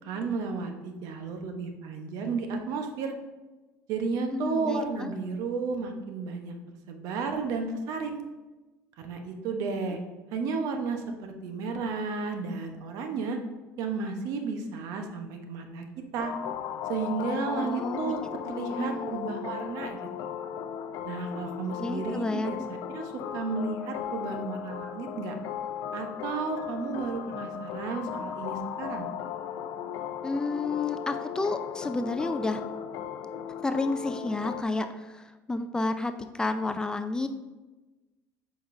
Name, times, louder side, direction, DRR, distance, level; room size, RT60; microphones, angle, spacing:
voice 1, 0.0-3.1 3.9-6.6 6.9-8.2 9.0-10.0 10.3-13.4 13.8-15.9 16.1-16.3 16.9-20.3 21.0-22.6 22.9-25.3 25.9-29.1, right 4 dB, 70° right, 5 dB, 0.9 m, -33 dB
voice 2, 4.3-5.1 17.5-18.1 18.5-19.4 21.8-22.5 30.2-32.6 33.6-37.3, left 2 dB, 10° left, 9 dB, 0.3 m, -31 dB
sound 1, 16.2-34.6, left 9 dB, 70° left, 0.5 m, -37 dB
7.7 x 5.1 x 2.6 m, 1.2 s
supercardioid pair, 110°, 6 cm